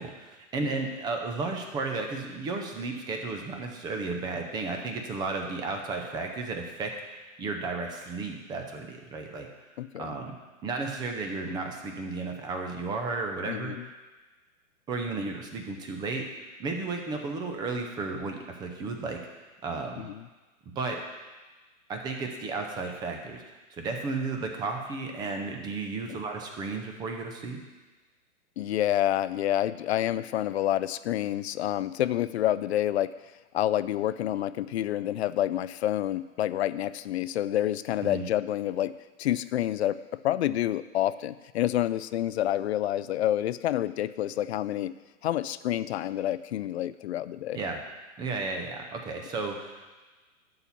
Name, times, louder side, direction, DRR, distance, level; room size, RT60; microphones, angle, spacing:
voice 1, 0.0-9.5 10.0-10.4 10.6-13.7 14.9-16.2 16.6-19.2 19.6-20.0 20.8-21.0 21.9-23.4 23.7-27.6 38.0-38.3 47.5-47.8 48.2-49.9, right 3 dB, 10° right, 3 dB, 0.5 m, -33 dB
voice 2, 9.8-10.1 13.5-13.9 20.0-20.3 26.1-26.2 28.6-33.1 33.5-38.9 39.2-40.0 40.2-44.9 45.2-47.6, left 12 dB, 50° left, 15 dB, 0.4 m, -28 dB
11.5 x 4.3 x 7.0 m, 1.2 s
hypercardioid pair, 140°, 42 cm